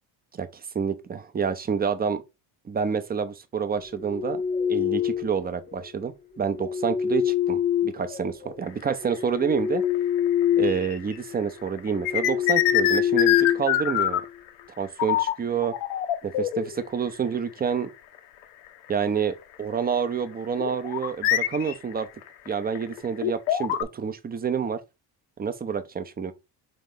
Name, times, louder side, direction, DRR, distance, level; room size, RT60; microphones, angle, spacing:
voice 1, 0.7-2.2 2.7-4.4 4.7-9.8 10.6-14.2 14.8-15.7 16.2-17.9 18.9-22.1 22.5-24.8 25.4-26.3, right 6 dB, 20° right, 0.5 m, -28 dB
sound 1, 3.9-5.4 6.4-8.5 9.0-10.9 11.2-11.4 11.9-14.3, left 10 dB, 15° left, 0.8 m, -25 dB
sound 2, 8.7-8.9 9.6-11.2 11.4-14.5 15.0-15.4 15.6-16.9 17.7-17.8 18.2-18.3 18.9-19.0 20.6-23.8, left 11 dB, 80° left, 0.7 m, -25 dB
4.0 x 3.0 x 3.6 m
supercardioid pair, 85°, 49 cm